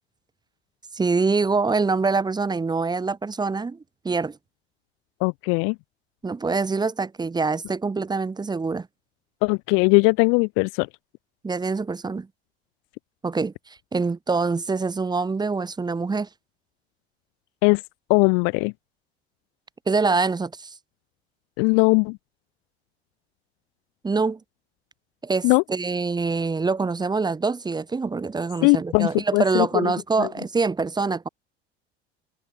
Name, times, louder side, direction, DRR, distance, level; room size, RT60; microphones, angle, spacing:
voice 1, 0.9-4.4 6.2-8.9 11.4-12.3 13.2-16.3 19.9-20.7 24.0-24.4 25.2-31.3, right 4 dB, 15° right, 1.3 m, -25 dB
voice 2, 5.2-5.8 9.4-10.9 17.6-17.8 18.1-18.7 21.6-22.2 25.4-25.6 28.6-29.9 30.2-30.3, left 38 dB, 45° left, 0.5 m, -20 dB
figure-of-eight pair, 70°, 31 cm